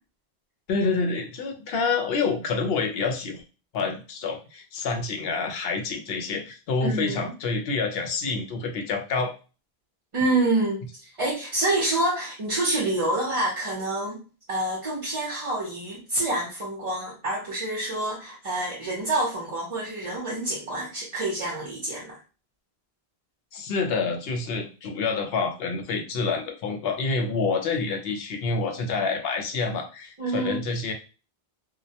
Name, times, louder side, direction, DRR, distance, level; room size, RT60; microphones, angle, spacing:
voice 1, 0.7-3.4 3.7-9.3 23.5-30.9, left 4 dB, 75° left, 5 dB, 0.8 m, -27 dB
voice 2, 6.8-7.3 10.1-14.2 14.5-22.2 30.2-30.6, right 2 dB, 40° right, -4 dB, 0.6 m, -27 dB
2.2 x 2.1 x 2.7 m, 0.34 s
omnidirectional pair, 1.1 m